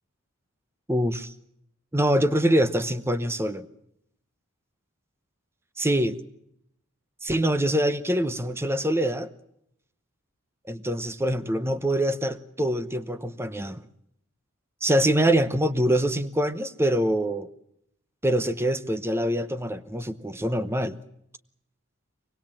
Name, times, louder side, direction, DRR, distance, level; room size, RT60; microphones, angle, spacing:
voice 1, 0.9-1.3 1.9-3.6 5.8-6.2 7.2-9.3 10.7-13.8 14.8-17.5 18.2-21.0, right 1 dB, 10° right, 13 dB, 0.9 m, -24 dB
24.5 x 20.5 x 7.4 m, 0.75 s
head